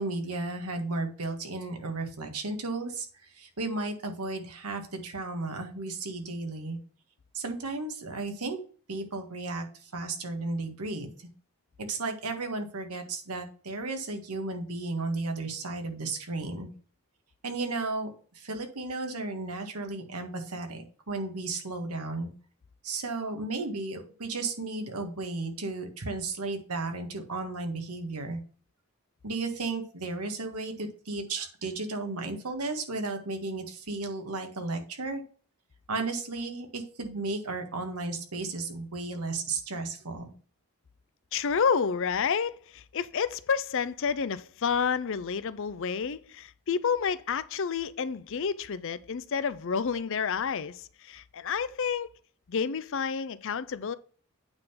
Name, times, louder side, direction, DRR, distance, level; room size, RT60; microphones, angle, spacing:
voice 1, 0.0-3.1 3.3-6.8 7.3-8.6 8.9-11.3 11.8-16.7 17.4-22.3 22.8-28.4 29.2-35.2 35.9-40.3, right 3 dB, 85° right, 1.7 m, -34 dB
voice 2, 41.3-52.1 52.5-53.9, left 6 dB, 60° left, 0.5 m, -29 dB
8.8 x 3.9 x 5.7 m
head